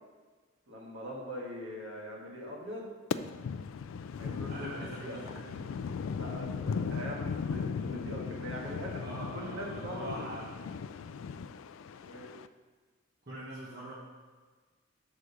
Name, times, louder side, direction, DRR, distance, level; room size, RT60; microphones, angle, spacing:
voice 1, 0.7-2.9 4.2-5.2 6.1-9.0 9.3-10.3 11.9-12.3, equal, 70° right, -2 dB, 1.7 m, -41 dB
sound 1, 3.1-12.5, left 6 dB, 75° left, 0.3 m, -37 dB
voice 2, 4.5-5.9 9.0-10.5 13.3-13.9, right 1 dB, 50° right, -6 dB, 1.2 m, -43 dB
6.3 x 4.9 x 6.8 m, 1.4 s
head